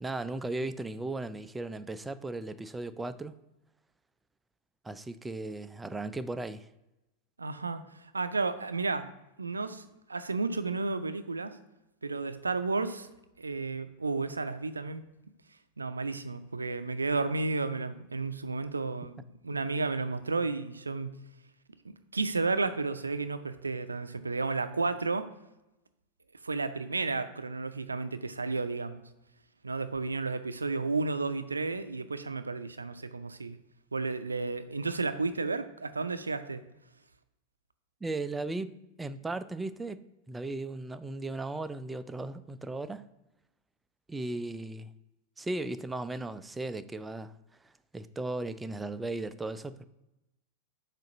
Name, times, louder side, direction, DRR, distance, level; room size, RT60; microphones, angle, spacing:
voice 1, 0.0-3.4 4.8-6.7 38.0-38.7 39.0-40.0 40.3-43.0 44.1-44.9 45.4-47.3 47.9-49.8, right 2 dB, 10° right, 0.4 m, -36 dB
voice 2, 7.4-9.1 9.4-9.8 10.1-11.6 12.0-13.1 13.4-15.1 15.8-19.2 19.4-21.1 21.8-25.3 26.4-29.0 29.6-33.6 33.9-36.6, right 3 dB, 80° right, 0.4 m, -32 dB
7.5 x 2.5 x 5.2 m
figure-of-eight pair, 90°, 0 cm